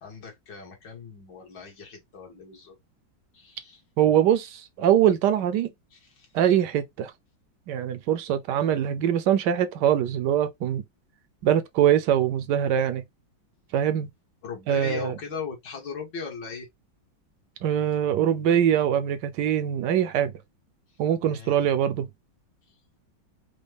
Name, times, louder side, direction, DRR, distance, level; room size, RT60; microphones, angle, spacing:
voice 1, 0.0-2.7 3.3-3.8 5.9-6.3 14.4-16.7 21.3-21.6, left 5 dB, 60° left, 2.0 m, -39 dB
voice 2, 4.0-5.7 6.3-7.1 7.7-10.8 11.4-13.0 13.7-14.1 14.7-15.1 17.6-20.3 21.0-22.1, right 10 dB, 70° right, 1.1 m, -23 dB
5.1 x 2.2 x 3.3 m
omnidirectional pair, 2.2 m